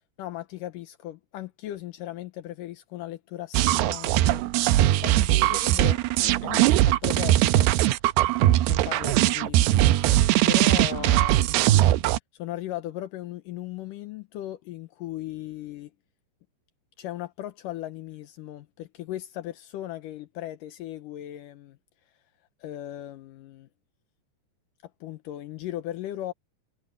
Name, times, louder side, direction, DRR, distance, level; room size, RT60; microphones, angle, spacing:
voice 1, 0.2-4.5 5.0-7.7 8.7-9.9 10.4-11.8 12.4-15.9 17.0-21.8 22.6-23.7 25.0-26.3, left 13 dB, 90° left, 1.8 m, -37 dB
sound 1, 3.5-12.2, right 14 dB, 80° right, 2.5 m, -20 dB
omnidirectional pair, 5.1 m